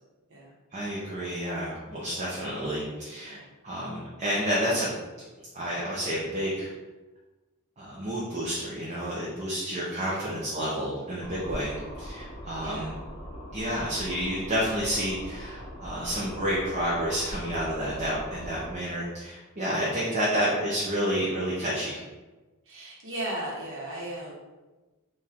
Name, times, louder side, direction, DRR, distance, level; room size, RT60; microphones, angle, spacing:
voice 1, 0.7-4.9 5.5-6.7 7.8-13.0 13.5-22.0, equal, 30° right, -6 dB, 0.7 m, -30 dB
voice 2, 10.0-10.3 12.6-13.0 20.0-20.1 22.7-24.3, right 1 dB, 60° right, -4 dB, 1.2 m, -37 dB
sound 1, 11.2-18.7, equal, 30° left, 1.0 m, -41 dB
4.7 x 2.5 x 3.5 m, 1.2 s
head